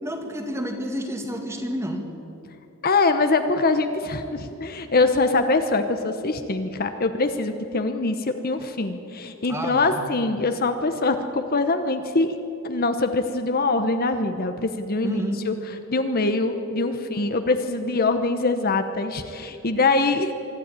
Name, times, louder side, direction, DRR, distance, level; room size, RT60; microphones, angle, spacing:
voice 1, 0.0-2.1 9.5-10.0 15.0-15.4, equal, 10° right, 4 dB, 1.9 m, -29 dB
voice 2, 2.8-8.2 8.4-12.3 12.6-15.2 15.5-15.6 15.9-20.3, left 3 dB, 45° left, 8 dB, 0.9 m, -23 dB
24.5 x 12.5 x 8.9 m, 2.9 s
head